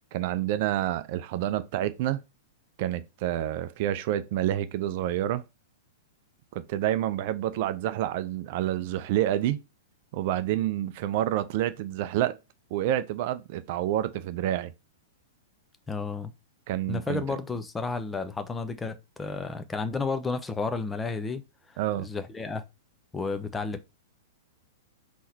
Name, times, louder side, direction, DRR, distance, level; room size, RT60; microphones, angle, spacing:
voice 1, 0.1-2.2 2.8-5.4 6.5-9.6 10.1-12.4 12.7-14.7 16.7-17.2 21.8-22.1, right 12 dB, 50° right, 0.4 m, -28 dB
voice 2, 15.9-16.3 16.9-21.4 22.0-22.6 23.1-23.8, left 4 dB, 15° left, 0.6 m, -32 dB
3.8 x 3.0 x 4.0 m
figure-of-eight pair, 105°, 0 cm